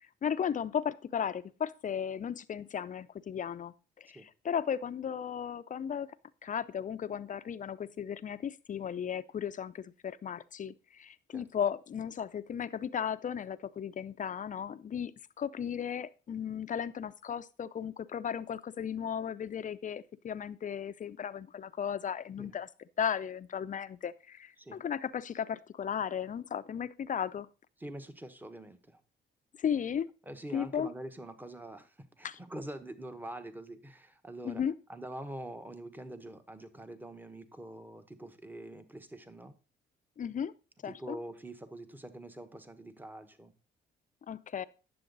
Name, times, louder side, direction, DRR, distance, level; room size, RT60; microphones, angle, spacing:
voice 1, 0.2-6.1 6.4-22.7 23.0-27.5 29.6-30.1 30.5-30.9 32.2-32.4 34.4-34.7 40.2-40.5 40.8-41.2 44.3-44.6, left 8 dB, 40° left, 0.6 m, -35 dB
voice 2, 27.8-29.0 30.3-34.6 34.9-39.5 40.8-43.5, right 1 dB, 10° right, 1.1 m, -45 dB
9.8 x 7.0 x 3.9 m
cardioid pair, 90°, 20 cm